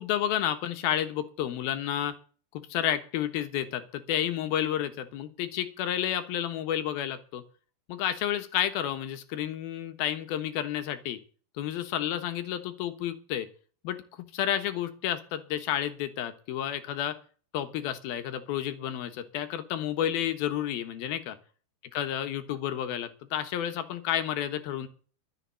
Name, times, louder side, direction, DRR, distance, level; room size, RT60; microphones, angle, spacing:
voice 1, 0.0-2.2 2.7-7.4 7.9-11.2 11.6-13.5 13.8-17.2 17.5-21.3 21.9-24.9, left 11 dB, 70° left, 10 dB, 3.0 m, -31 dB
13.0 x 7.2 x 8.1 m, 0.40 s
omnidirectional pair, 4.7 m